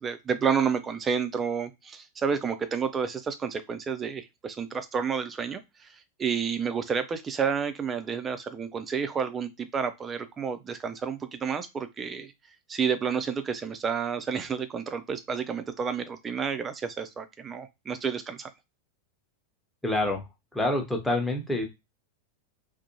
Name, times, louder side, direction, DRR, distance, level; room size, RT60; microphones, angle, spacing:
voice 1, 0.0-12.3 12.7-18.5, right 6 dB, 20° right, 10 dB, 0.4 m, -30 dB
voice 2, 19.8-20.2 20.5-21.7, left 1 dB, 5° left, 1 dB, 0.8 m, -27 dB
2.5 x 2.0 x 2.7 m, 0.22 s
figure-of-eight pair, 90°, 0 cm